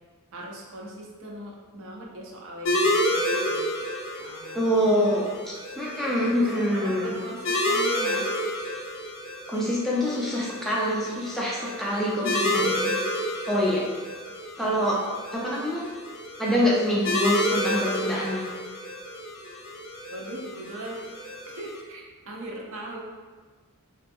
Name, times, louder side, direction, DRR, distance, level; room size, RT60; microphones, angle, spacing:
voice 1, 0.3-3.7 4.2-5.2 6.4-8.3 20.1-21.1 21.6-23.0, right 1 dB, 65° right, -2 dB, 0.5 m, -39 dB
sound 1, 2.6-21.8, left 1 dB, 60° left, 0.5 m, -30 dB
voice 2, 4.5-5.3 5.8-7.1 9.5-12.9 13.5-13.9 14.6-15.0 15.3-15.8 16.4-18.4, equal, ahead, -6 dB, 0.3 m, -25 dB
2.6 x 2.3 x 2.6 m, 1.4 s
head